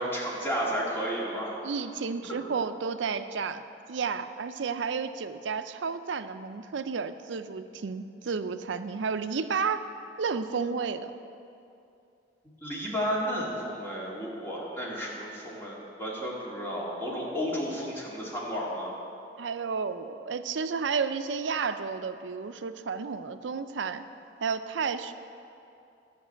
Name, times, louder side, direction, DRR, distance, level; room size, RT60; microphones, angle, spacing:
voice 1, 0.0-1.6 2.3-2.4 12.6-18.9, equal, 15° left, -5 dB, 2.1 m, -32 dB
voice 2, 1.6-3.6 3.9-9.9 10.2-11.1 19.4-24.0 24.4-25.1, right 5 dB, 85° right, 10 dB, 0.5 m, -32 dB
11.0 x 6.0 x 8.3 m, 2.6 s
head